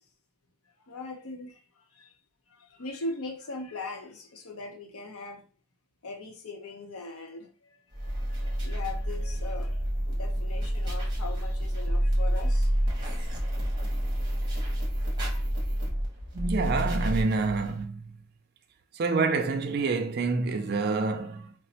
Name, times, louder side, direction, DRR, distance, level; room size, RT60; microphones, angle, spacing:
voice 1, 0.9-2.2 2.5-5.5 6.0-13.0, left 2 dB, 85° left, 0.7 m, -40 dB
sound 1, 7.9-17.8, equal, 20° right, 0.8 m, -29 dB
voice 2, 16.3-18.2 18.9-21.5, right 4 dB, 45° right, 0.3 m, -27 dB
4.0 x 2.0 x 2.7 m
head